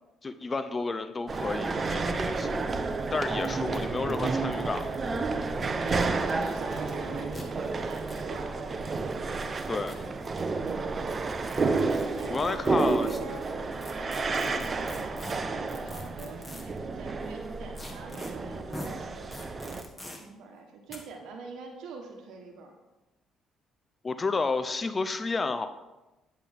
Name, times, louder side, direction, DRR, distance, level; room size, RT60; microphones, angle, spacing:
voice 1, 0.2-2.7 3.1-5.0 9.7-10.0 12.3-13.1 14.3-14.7 24.0-25.7, left 3 dB, 30° left, 10 dB, 0.6 m, -31 dB
sound 1, 1.3-19.8, right 3 dB, 35° right, 0.8 m, -31 dB
sound 2, 2.6-2.7 2.9-3.0 3.4-3.5 3.7-5.2 5.8-6.9 7.3-7.4 7.9-8.3 9.4-10.3 11.5-13.2 13.8-16.8 17.8-18.3 18.7-18.9 19.3-20.2 20.9-21.0, left 1 dB, 15° left, 1.8 m, -44 dB
voice 2, 5.8-9.0 10.6-10.9 12.1-19.3 20.2-22.8, right 4 dB, 80° right, 2 dB, 1.2 m, -44 dB
10.0 x 7.5 x 3.6 m, 1.0 s
cardioid pair, 80°, 0 cm